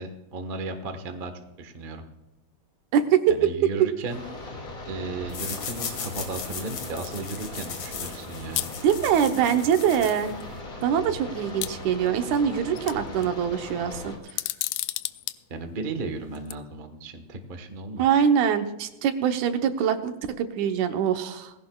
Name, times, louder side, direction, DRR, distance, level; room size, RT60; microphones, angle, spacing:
voice 1, 0.0-1.3 1.6-2.0 3.3-4.2 4.9-8.7 15.5-18.1, right 3 dB, 50° right, 6 dB, 0.6 m, -35 dB
sound 1, 4.1-14.2, left 1 dB, 30° left, 2.4 m, -39 dB
sound 2, 5.3-10.6, left 6 dB, 65° left, 2.9 m, -37 dB
sound 3, 8.6-8.8 9.9-10.0 10.4-10.5 11.6-12.4 12.8-13.3 14.3-15.4 16.3-16.5, left 17 dB, 85° left, 1.9 m, -31 dB
voice 2, 8.8-10.3 10.8-14.4 18.0-21.5, right 8 dB, 85° right, 7 dB, 2.4 m, -24 dB
19.5 x 16.0 x 2.4 m, 1.0 s
omnidirectional pair, 3.3 m